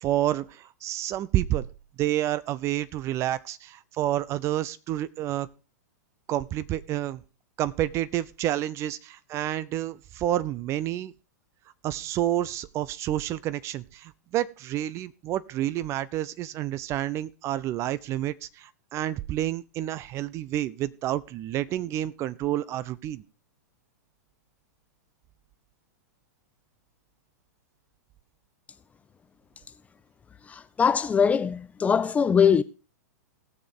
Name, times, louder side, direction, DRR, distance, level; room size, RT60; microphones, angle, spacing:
voice 1, 0.0-1.7 2.0-5.5 6.3-7.2 7.6-11.1 11.8-23.2, right 13 dB, 30° right, 0.6 m, -29 dB
voice 2, 30.5-32.6, left 6 dB, 15° left, 0.5 m, -22 dB
18.5 x 7.0 x 3.8 m
figure-of-eight pair, 100°, 9 cm